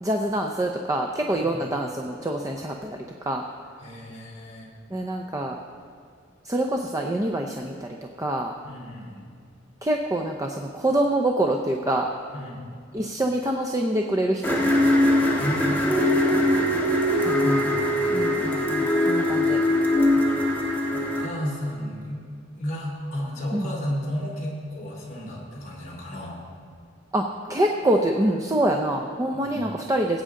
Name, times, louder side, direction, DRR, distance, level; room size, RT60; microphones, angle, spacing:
voice 1, 0.0-3.0 3.3-3.4 4.9-5.6 6.4-8.5 9.8-12.1 12.9-14.6 17.2-17.7 18.1-19.6 23.5-23.7 27.1-30.2, right 1 dB, 15° right, 2 dB, 0.6 m, -26 dB
voice 2, 3.8-4.7 8.6-9.3 12.3-12.6 15.2-16.4 17.3-18.2 20.1-20.3 20.9-22.2 22.5-26.4 29.4-29.6, equal, 40° left, -4 dB, 3.1 m, -33 dB
sound 1, 14.4-21.3, left 1 dB, 10° left, 1.4 m, -22 dB
20.0 x 8.8 x 3.7 m, 2.2 s
head